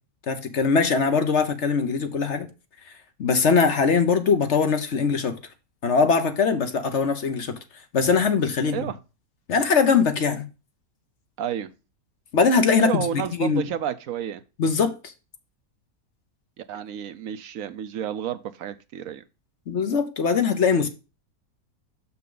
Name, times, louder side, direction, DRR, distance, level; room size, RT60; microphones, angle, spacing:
voice 1, 0.3-2.5 3.2-5.4 5.8-7.5 7.9-8.9 9.5-10.5 12.3-13.0 13.4-13.6 14.6-15.1 19.7-20.9, left 5 dB, 55° left, 1.2 m, -21 dB
voice 2, 11.4-11.7 12.8-14.4 16.6-19.2, right 9 dB, 70° right, 1.0 m, -31 dB
6.6 x 5.9 x 3.8 m
omnidirectional pair, 1.5 m